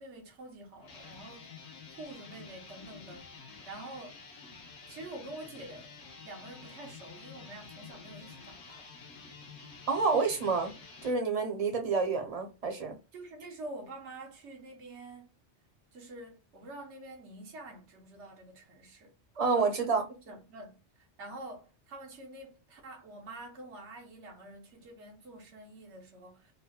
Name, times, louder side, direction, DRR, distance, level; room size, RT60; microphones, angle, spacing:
voice 1, 0.0-1.5 2.0-4.2 4.9-6.0 6.2-8.9 13.1-15.3 15.9-19.1 19.5-20.0 20.3-26.5, right 2 dB, 85° right, 1.3 m, -47 dB
sound 1, 0.8-11.2, left 5 dB, 70° left, 1.1 m, -50 dB
voice 2, 9.9-10.7 11.0-13.0 19.4-20.0, right 4 dB, 40° right, 0.7 m, -28 dB
3.7 x 2.1 x 2.3 m
omnidirectional pair, 1.2 m